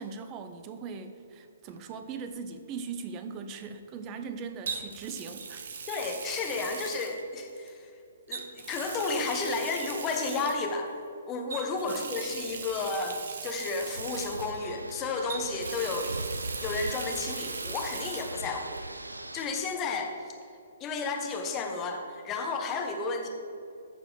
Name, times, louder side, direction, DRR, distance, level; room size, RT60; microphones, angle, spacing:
voice 1, 0.0-5.6 11.9-12.1, right 5 dB, 25° right, 8 dB, 0.7 m, -40 dB
Water tap faucet, 1.7-1.9 4.7-7.7 8.3-10.8 11.5-14.9 15.3-18.4 18.7-18.8 20.4-20.5, right 5 dB, 55° right, 0.8 m, -40 dB
voice 2, 5.9-7.9 8.3-10.9 11.3-16.2 16.6-19.1 19.3-20.1 20.8-23.3, left 4 dB, 20° left, 3 dB, 1.1 m, -32 dB
sound 1, 13.9-19.4, right 2 dB, 85° right, 0.5 m, -39 dB
13.5 x 4.7 x 5.2 m, 2.5 s
figure-of-eight pair, 125°, 0 cm